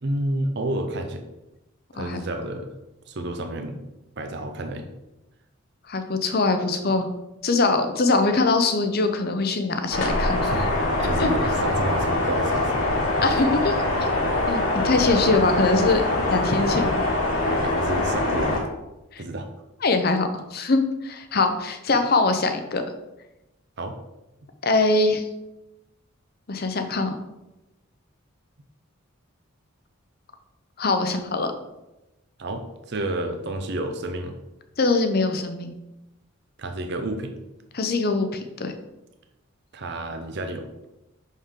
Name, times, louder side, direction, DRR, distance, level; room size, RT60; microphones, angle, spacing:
voice 1, 0.0-1.2 1.9-2.7 3.1-3.8 4.2-4.9 10.4-10.6 11.0-13.0 17.4-18.6 19.2-19.5 23.8-24.0 32.4-34.4 36.6-37.4 39.7-40.7, right 1 dB, 50° right, 5 dB, 0.6 m, -30 dB
voice 2, 5.9-7.1 7.4-10.5 11.2-11.3 13.2-13.8 14.5-16.0 16.3-17.0 19.1-19.2 19.8-22.8 24.6-25.2 26.5-27.2 30.8-31.5 34.8-35.7 37.7-38.7, left 3 dB, 45° left, 7 dB, 0.7 m, -22 dB
sound 1, 9.9-18.6, left 2 dB, 80° left, 1.9 m, -23 dB
6.3 x 5.5 x 3.7 m, 0.96 s
head